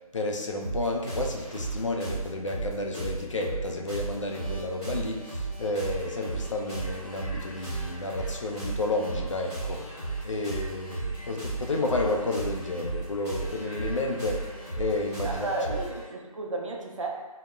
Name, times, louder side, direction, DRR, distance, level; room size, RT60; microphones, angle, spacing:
voice 1, 0.1-9.8 10.2-15.8, left 2 dB, 55° left, 1 dB, 0.4 m, -31 dB
sound 1, 0.6-16.0, right 3 dB, 5° left, 0.8 m, -35 dB
sound 2, 5.7-16.1, equal, 20° right, 0.9 m, -49 dB
voice 2, 15.2-17.1, right 2 dB, 55° right, 0 dB, 0.4 m, -33 dB
3.6 x 2.1 x 2.2 m, 1.2 s
figure-of-eight pair, 170°, 19 cm